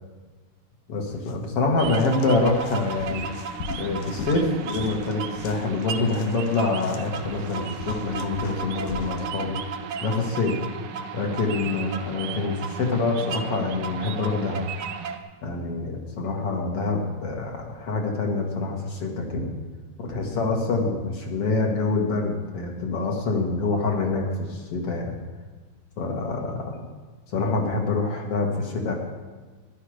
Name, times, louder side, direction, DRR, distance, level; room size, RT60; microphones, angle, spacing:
voice 1, 0.9-3.3 3.8-9.6 10.0-10.6 11.1-14.6 15.4-19.5 20.0-25.2 26.0-26.8 27.3-28.9, left 3 dB, 55° left, 0 dB, 2.6 m, -26 dB
sound 1, 1.1-1.3 1.7-9.3, left 7 dB, 85° left, 2.2 m, -39 dB
sound 2, 1.8-15.2, right 6 dB, 85° right, 1.2 m, -34 dB
15.0 x 11.0 x 5.0 m, 1.4 s
omnidirectional pair, 3.4 m